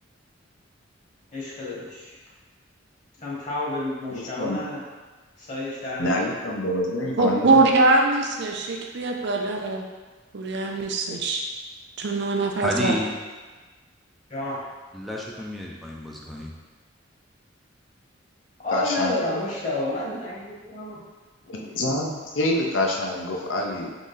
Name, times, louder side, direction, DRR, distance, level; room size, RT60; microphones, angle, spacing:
voice 1, 1.3-2.1 3.2-4.8 5.4-6.2 14.3-14.6 18.6-21.0 21.4-21.9, left 2 dB, 40° left, -6 dB, 1.2 m, -30 dB
voice 2, 4.1-4.6 6.0-7.6 18.7-19.4 21.5-23.9, left 1 dB, 75° left, 0 dB, 0.6 m, -27 dB
voice 3, 7.2-9.8 10.3-11.4 12.0-12.9, right 3 dB, 65° right, 1 dB, 0.6 m, -22 dB
voice 4, 12.6-13.1 14.9-16.5, equal, ahead, -3 dB, 0.4 m, -30 dB
3.9 x 3.1 x 3.8 m, 1.3 s
head